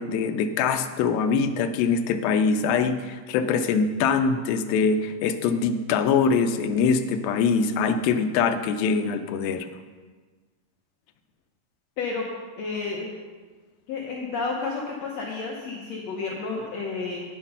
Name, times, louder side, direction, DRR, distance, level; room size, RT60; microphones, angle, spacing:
voice 1, 0.0-9.7, left 5 dB, 85° left, 8 dB, 2.4 m, -23 dB
voice 2, 12.6-13.1 13.9-17.2, left 4 dB, 65° left, -2 dB, 1.7 m, -31 dB
8.9 x 7.9 x 5.5 m, 1.4 s
omnidirectional pair, 4.1 m